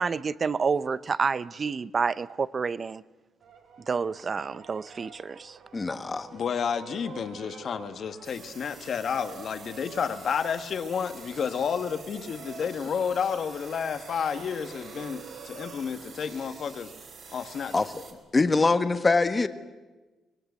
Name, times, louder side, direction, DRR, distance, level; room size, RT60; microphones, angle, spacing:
voice 1, 0.0-3.0 3.9-5.6, right 5 dB, 40° right, 0.6 m, -29 dB
sound 1, 3.4-16.5, right 6 dB, 75° right, 2.9 m, -49 dB
voice 2, 5.7-6.3 17.7-18.0 18.3-19.5, left 3 dB, 25° left, 1.3 m, -23 dB
voice 3, 6.3-16.9 17.3-17.7, left 7 dB, 55° left, 1.5 m, -31 dB
sound 2, 8.2-18.1, right 5 dB, 60° right, 4.4 m, -48 dB
24.5 x 18.0 x 8.2 m
cardioid pair, 90°, 0 cm